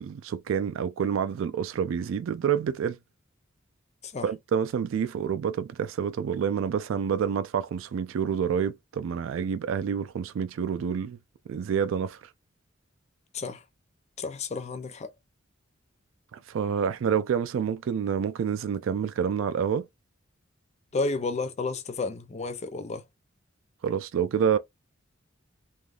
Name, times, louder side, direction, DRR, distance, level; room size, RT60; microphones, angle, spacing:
voice 1, 0.0-3.0 4.2-11.2 11.5-12.2 16.3-19.9 23.8-24.6, right 7 dB, 75° right, 0.3 m, -28 dB
voice 2, 14.2-15.1 20.9-23.0, left 3 dB, 35° left, 0.5 m, -31 dB
3.4 x 2.2 x 2.4 m
head